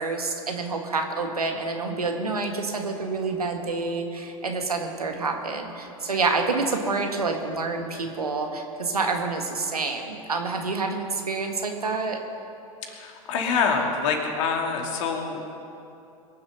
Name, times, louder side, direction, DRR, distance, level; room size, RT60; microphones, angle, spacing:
voice 1, 0.0-12.2, right 3 dB, 85° right, 3 dB, 1.8 m, -28 dB
voice 2, 12.9-15.4, left 5 dB, 55° left, 2 dB, 2.6 m, -26 dB
22.5 x 7.6 x 6.7 m, 2.7 s
figure-of-eight pair, 95°, 19 cm